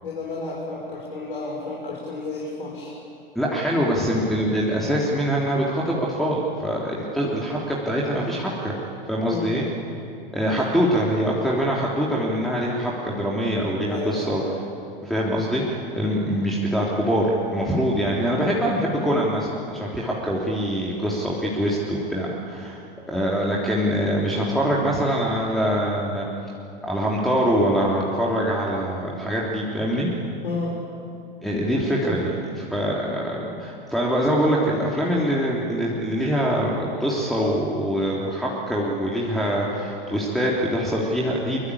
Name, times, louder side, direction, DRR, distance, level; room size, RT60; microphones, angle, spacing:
voice 1, 0.0-2.9 9.3-9.5 13.9-14.5 30.4-30.7 32.0-32.1, left 3 dB, 70° left, -3 dB, 6.1 m, -31 dB
voice 2, 3.4-8.8 9.1-9.7 10.3-14.4 15.0-22.8 23.1-26.3 26.8-30.1 31.4-41.7, equal, ahead, -5 dB, 3.5 m, -24 dB
24.5 x 24.0 x 8.7 m, 2.5 s
figure-of-eight pair, 95°, 29 cm